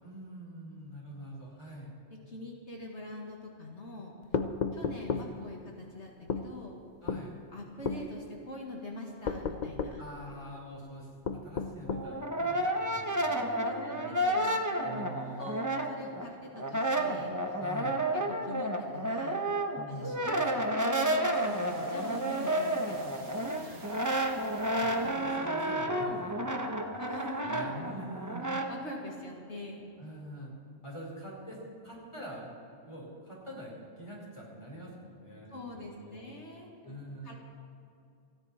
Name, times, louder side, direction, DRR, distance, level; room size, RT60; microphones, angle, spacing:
voice 1, 0.0-1.9 5.1-5.2 7.0-7.4 10.0-14.1 14.8-15.5 17.6-18.0 19.7-20.3 24.6-27.1 27.4-28.5 30.0-30.5 30.8-32.6 32.9-36.3 36.8-37.4, right 1 dB, 25° left, -4 dB, 4.7 m, -45 dB
voice 2, 2.1-4.1 4.7-6.8 7.5-10.0 13.4-17.6 18.1-19.4 19.9-23.9 27.0-27.8 28.7-29.8 35.5-37.0 37.2-37.3, left 1 dB, 65° left, -1 dB, 2.2 m, -44 dB
sound 1, 4.3-5.3 6.3-6.5 7.1-7.3 7.8-8.0 9.2-10.0 11.2-12.1, left 5 dB, 45° left, 0.8 m, -32 dB
Brass instrument, 11.8-16.3 16.5-28.7, right 1 dB, 15° right, 1.0 m, -31 dB
sound 2, 21.3-26.1, right 3 dB, 55° right, 1.7 m, -50 dB
29.5 x 10.0 x 4.3 m, 2.6 s
omnidirectional pair, 1.3 m